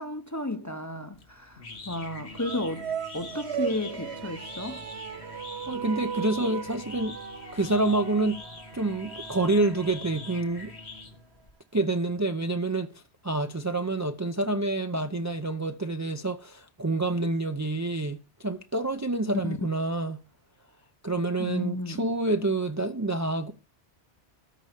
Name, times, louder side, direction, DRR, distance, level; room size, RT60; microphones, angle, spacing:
voice 1, 0.0-4.9 19.4-19.6 21.4-22.0, left 1 dB, 20° left, 0.8 m, -33 dB
sound 1, 1.1-11.5, left 3 dB, 80° left, 2.0 m, -44 dB
sound 2, 2.3-10.8, right 8 dB, 75° right, 1.3 m, -38 dB
voice 2, 5.7-7.2 7.5-8.4 8.7-10.7 11.7-12.9 13.2-20.2 21.0-23.5, right 2 dB, 20° right, 0.6 m, -27 dB
13.5 x 4.8 x 8.1 m
omnidirectional pair, 1.1 m